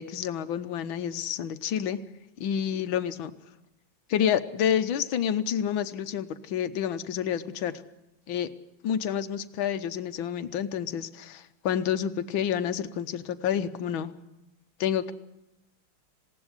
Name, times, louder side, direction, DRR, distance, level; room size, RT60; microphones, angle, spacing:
voice 1, 0.0-2.0 2.4-3.3 4.1-7.8 8.3-8.5 8.8-14.1 14.8-15.1, left 9 dB, 80° left, 10 dB, 1.8 m, -29 dB
20.0 x 17.5 x 9.7 m, 0.92 s
omnidirectional pair, 2.2 m